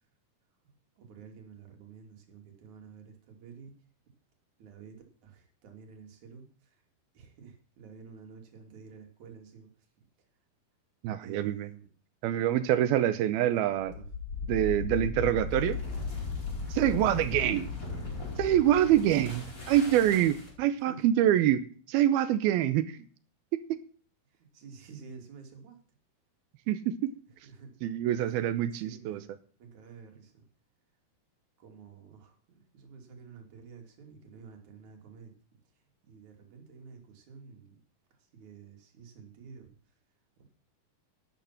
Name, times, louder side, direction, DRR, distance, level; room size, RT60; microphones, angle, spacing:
voice 1, 1.0-3.7 4.6-5.0 5.2-6.5 7.1-9.7 11.2-11.9 13.5-14.1 17.9-18.4 20.8-21.1 24.3-25.8 27.4-27.7 28.7-29.3 29.6-30.4 31.6-35.3 36.0-37.8 38.3-39.7 40.4-40.5, right 6 dB, 50° right, 3 dB, 4.0 m, -50 dB
voice 2, 11.0-11.7 12.2-13.9 14.5-15.8 16.7-17.7 18.4-21.6 21.9-22.9 23.7-23.8 26.7-27.1 27.8-29.2, right 12 dB, 80° right, 14 dB, 2.6 m, -25 dB
sound 1, 13.8-20.7, left 4 dB, 20° left, 4.6 m, -36 dB
12.0 x 11.0 x 5.9 m, 0.42 s
omnidirectional pair, 4.6 m